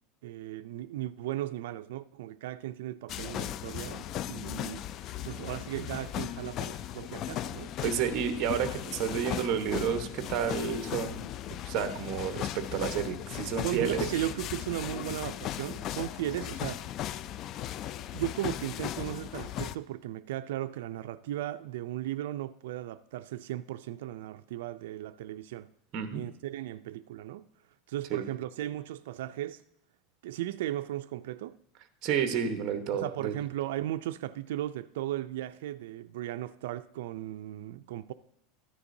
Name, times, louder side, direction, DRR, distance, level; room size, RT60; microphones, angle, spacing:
voice 1, 0.2-7.7 13.6-16.9 18.0-25.7 26.1-27.5 27.9-29.6 30.2-31.6 32.9-38.1, right 14 dB, 80° right, 0.3 m, -36 dB
sound 1, 3.1-19.8, left 11 dB, 40° left, 0.3 m, -37 dB
voice 2, 7.8-11.2 11.6-14.0 25.9-26.2 28.1-28.2 32.0-33.3, right 7 dB, 45° right, 1.0 m, -30 dB
13.5 x 9.8 x 2.7 m
supercardioid pair, 145°, 0 cm